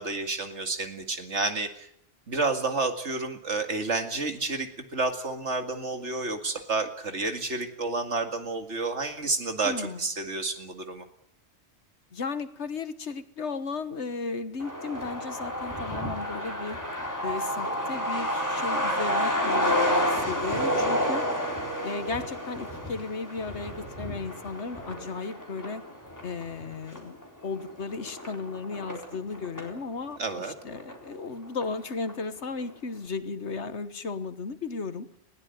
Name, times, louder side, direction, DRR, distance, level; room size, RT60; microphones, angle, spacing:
voice 1, 0.0-1.9 2.3-11.0 30.2-30.5, right 3 dB, 85° right, 6 dB, 2.6 m, -30 dB
voice 2, 9.6-10.0 12.1-16.8 17.2-21.2 21.8-25.8 26.2-35.1, left 4 dB, 80° left, 12 dB, 1.7 m, -35 dB
Truck, 14.6-29.8 30.1-30.2 30.5-31.3 31.6-31.7 32.1-32.4, equal, 15° left, 3.9 m, -30 dB
20.5 x 16.0 x 9.3 m, 0.71 s
omnidirectional pair, 1.2 m